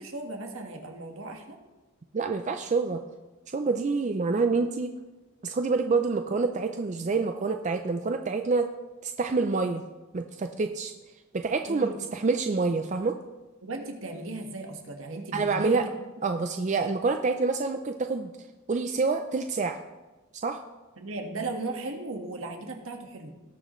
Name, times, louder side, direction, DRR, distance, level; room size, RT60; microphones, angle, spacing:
voice 1, 0.0-1.6 11.7-12.0 13.6-15.9 21.0-23.3, right 2 dB, 75° right, 3 dB, 1.5 m, -36 dB
voice 2, 2.1-3.0 3.5-4.9 5.4-8.7 9.0-9.8 10.1-10.9 11.3-13.2 15.3-15.8 16.2-18.3 18.7-19.8 20.4-20.6, right 4 dB, 35° right, 6 dB, 0.4 m, -27 dB
19.0 x 6.5 x 3.1 m, 1.2 s
head